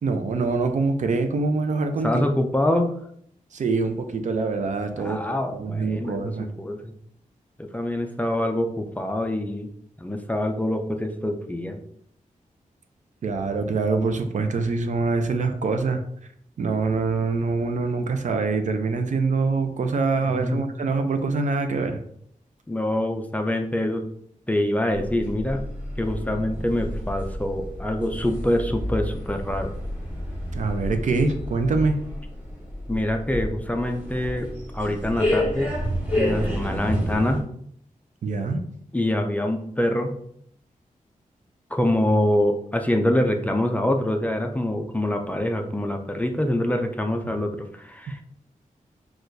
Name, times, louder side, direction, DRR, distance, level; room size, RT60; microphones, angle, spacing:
voice 1, 0.0-2.2 3.5-5.2 5.5-6.5 13.2-16.0 16.6-22.0 30.5-32.0 38.2-38.6, right 4 dB, 60° right, 7 dB, 0.5 m, -24 dB
voice 2, 2.0-2.9 5.0-6.9 7.6-9.7 10.0-11.8 20.4-20.6 22.7-24.0 24.5-25.7 26.0-29.7 32.9-34.5 34.7-35.7 36.2-37.4 38.9-40.1 41.7-48.2, left 1 dB, 10° left, 4 dB, 0.3 m, -25 dB
sound 1, 24.9-37.4, left 1 dB, 10° right, 1.2 m, -30 dB
6.2 x 2.3 x 2.6 m, 0.68 s
wide cardioid pair, 150°, 14 cm